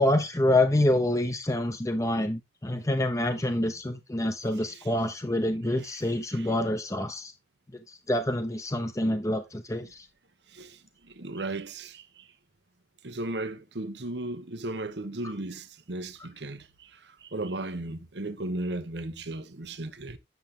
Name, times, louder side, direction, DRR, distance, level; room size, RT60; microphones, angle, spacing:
voice 1, 0.0-7.3 8.1-10.1, left 1 dB, 20° left, 0.9 m, -26 dB
voice 2, 11.2-12.0 13.0-16.6 17.3-20.2, right 2 dB, 80° right, 1.2 m, -35 dB
9.4 x 7.3 x 3.7 m
head